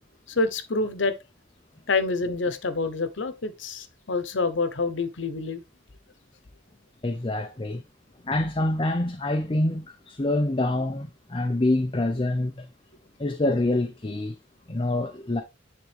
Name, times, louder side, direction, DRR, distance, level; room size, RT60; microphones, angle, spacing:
voice 1, 0.3-1.1 1.9-5.6, left 3 dB, 75° left, 0.9 m, -27 dB
voice 2, 7.0-7.8 8.2-12.7 13.2-14.4 14.7-15.4, left 1 dB, 25° left, 0.6 m, -26 dB
9.8 x 3.6 x 3.4 m
head